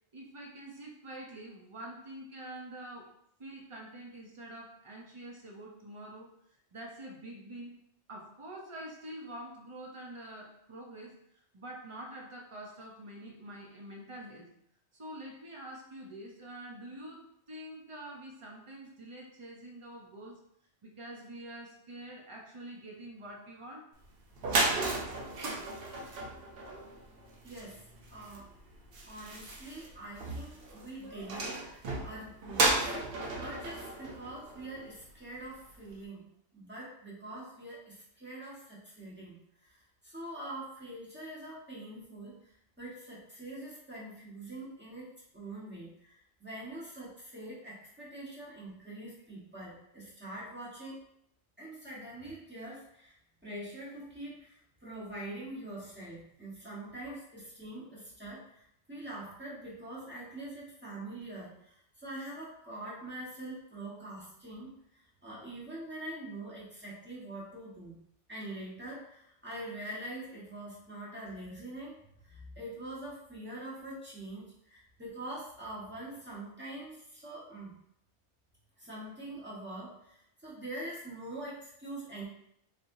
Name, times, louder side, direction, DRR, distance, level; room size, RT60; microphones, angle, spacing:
voice 1, 0.1-3.1 3.4-6.3 6.7-7.7 8.1-14.5 14.9-20.4 20.8-23.9, right 1 dB, 30° right, -1 dB, 0.7 m, -46 dB
sound 1, 24.0-24.1 24.3-35.1, right 2 dB, 60° right, 0.9 m, -34 dB
voice 2, 27.4-28.5 29.0-32.9 33.3-36.3 36.5-39.4 40.0-42.5 42.8-46.1 46.4-51.0 51.6-53.2 53.4-64.7 65.2-68.0 68.3-72.0 72.2-77.7 78.8-82.2, right 1 dB, 10° right, -7 dB, 1.2 m, -44 dB
4.2 x 3.3 x 2.6 m, 0.74 s
omnidirectional pair, 1.2 m